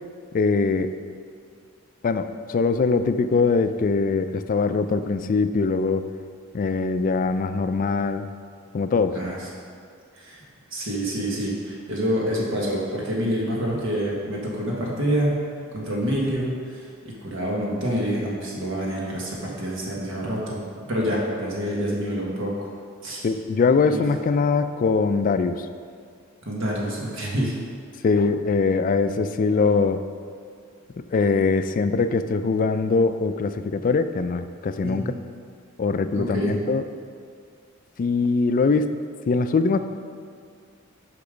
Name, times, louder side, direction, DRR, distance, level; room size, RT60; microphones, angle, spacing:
voice 1, 0.3-0.9 2.0-6.1 6.5-8.3 8.7-9.2 23.2-25.7 28.0-30.0 31.1-35.0 35.8-36.8 38.0-38.9 39.3-39.8, left 4 dB, 40° left, 10 dB, 0.3 m, -22 dB
voice 2, 9.1-9.5 10.1-10.4 10.7-15.5 15.7-20.6 20.9-22.7 23.0-23.2 23.8-24.0 26.4-27.5 34.8-35.1 36.1-36.5, equal, 65° right, -3 dB, 1.3 m, -27 dB
6.8 x 5.2 x 5.0 m, 2.2 s
head